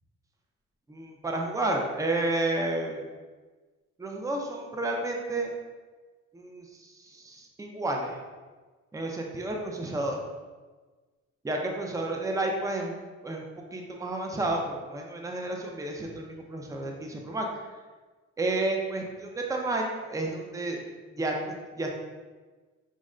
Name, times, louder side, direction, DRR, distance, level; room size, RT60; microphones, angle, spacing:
voice 1, 0.9-3.0 4.0-5.5 6.3-8.2 8.9-10.2 11.4-12.9 13.2-13.4 13.7-17.5 18.4-20.8 21.1-21.9, right 2 dB, 10° right, 1 dB, 0.5 m, -31 dB
5.2 x 2.1 x 3.7 m, 1.3 s
cardioid pair, 90°, 30 cm